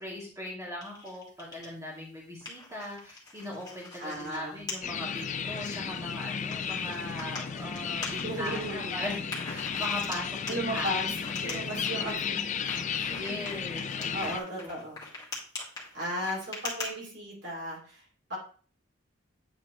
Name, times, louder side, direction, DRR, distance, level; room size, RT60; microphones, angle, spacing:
voice 1, 0.0-9.2 9.4-11.0 11.4-11.6 11.9-12.1 13.1-14.8, equal, 15° right, -5 dB, 2.4 m, -40 dB
sound 1, 0.8-1.7 2.1-4.4 4.7-4.8 5.3-5.7 6.5-8.7 9.3-12.1 12.7-16.9, left 3 dB, 20° left, 1.8 m, -41 dB
voice 2, 4.0-4.6 8.2-9.0 10.5-11.1 11.4-13.4 13.7-15.0 15.9-18.0 18.3-18.4, equal, 60° right, -3 dB, 2.5 m, -36 dB
sound 2, 4.8-14.4, left 7 dB, 35° left, 0.4 m, -34 dB
8.8 x 4.2 x 3.0 m, 0.42 s
head